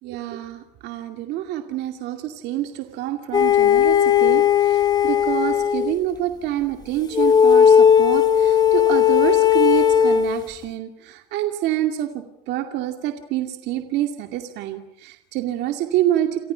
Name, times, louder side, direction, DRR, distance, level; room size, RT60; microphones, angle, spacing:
voice 1, 0.0-16.5, right 13 dB, 60° right, 5 dB, 2.4 m, -27 dB
sound 1, 3.3-5.9 7.1-10.4, left 8 dB, 20° left, 1.2 m, -16 dB
29.0 x 28.5 x 5.8 m, 0.75 s
cardioid pair, 155°, 20 cm